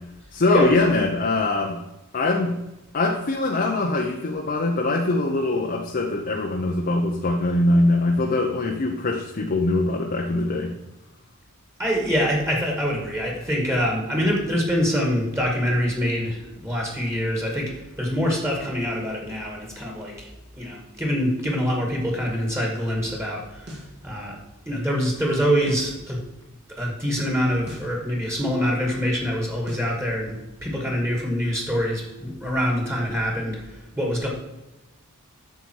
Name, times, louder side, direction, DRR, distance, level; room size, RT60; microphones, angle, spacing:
voice 1, 0.3-1.8 2.1-2.6 2.9-10.7, left 2 dB, 45° left, 0 dB, 0.9 m, -22 dB
voice 2, 11.8-20.3 20.6-23.7 24.0-24.4 24.7-26.2 26.8-33.6 34.0-34.3, equal, 10° right, 0 dB, 2.1 m, -25 dB
sound 1, 23.7-24.0 25.7-26.0 27.7-28.0 29.7-30.0, equal, 50° right, 2.6 m, -39 dB
9.4 x 6.9 x 4.7 m, 0.98 s
head